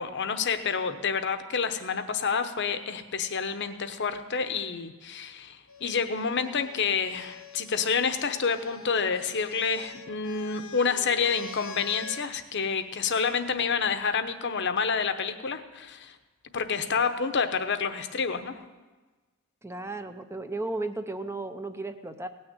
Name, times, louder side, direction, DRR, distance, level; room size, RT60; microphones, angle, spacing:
voice 1, 0.0-16.2 16.5-18.6, left 5 dB, 55° left, 9 dB, 0.9 m, -28 dB
sound 1, 5.7-12.3 13.4-14.0, left 4 dB, 85° left, 1.5 m, -46 dB
voice 2, 19.6-22.3, right 2 dB, 10° right, 8 dB, 0.6 m, -35 dB
17.5 x 6.4 x 8.9 m, 1.3 s
head